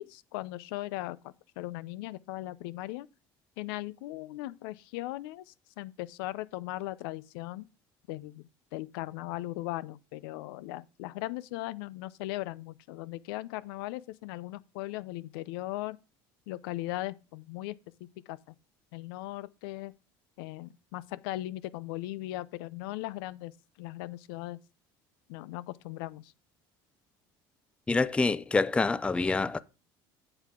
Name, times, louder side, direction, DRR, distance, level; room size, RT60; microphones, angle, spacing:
voice 1, 0.0-3.1 3.6-7.7 8.1-16.0 16.5-17.8 18.0-18.5 18.9-19.9 20.4-23.5 23.8-24.6 25.3-26.3, left 17 dB, 85° left, 0.5 m, -38 dB
voice 2, 27.9-29.6, left 3 dB, 10° left, 0.4 m, -26 dB
7.9 x 7.6 x 3.7 m
supercardioid pair, 125°, 12 cm